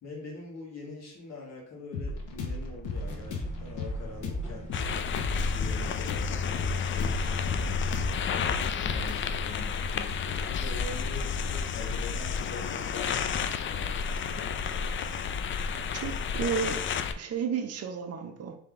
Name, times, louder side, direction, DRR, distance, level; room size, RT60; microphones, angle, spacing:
voice 1, 0.0-4.7 5.5-7.7 8.6-14.5, left 3 dB, 60° left, -2 dB, 1.7 m, -44 dB
sound 1, 1.9-11.6, left 2 dB, 80° left, 0.9 m, -36 dB
sound 2, 2.9-8.5, equal, 25° left, 1.7 m, -45 dB
sound 3, 4.7-17.1, left 6 dB, 40° left, 0.4 m, -31 dB
voice 2, 15.9-16.8 17.2-18.6, right 7 dB, 55° right, 6 dB, 0.6 m, -32 dB
3.6 x 3.3 x 3.6 m, 0.64 s
cardioid pair, 90°, 30 cm